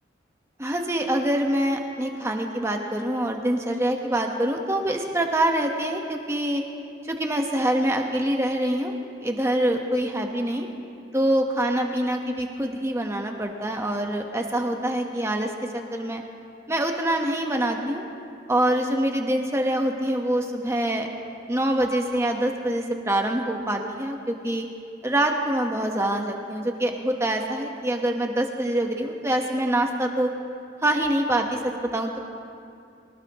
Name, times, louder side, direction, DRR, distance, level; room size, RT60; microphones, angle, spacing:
voice 1, 0.6-6.6 7.0-10.7 11.1-16.2 16.7-18.0 18.5-21.1 21.5-24.7 25.0-30.3 30.8-32.2, right 1 dB, 15° right, 2 dB, 1.3 m, -25 dB
23.0 x 19.0 x 3.1 m, 2.4 s
head